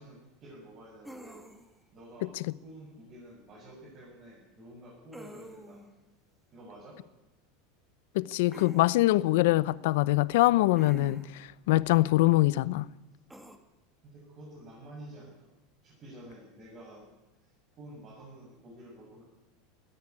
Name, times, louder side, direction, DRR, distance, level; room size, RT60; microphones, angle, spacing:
voice 1, 0.0-1.4 1.9-5.8 6.5-7.0 14.0-15.5 15.8-17.1 17.4-17.5 17.8-19.2, right 1 dB, 30° right, 7.6 m, -49 dB
sound 1, 1.0-1.8 5.1-5.9 8.5-8.9 10.8-11.4 13.3-13.6, equal, 5° right, 1.8 m, -47 dB
voice 2, 8.1-12.9, left 18 dB, 70° left, 0.7 m, -24 dB
18.5 x 15.5 x 9.9 m
supercardioid pair, 150°, 0 cm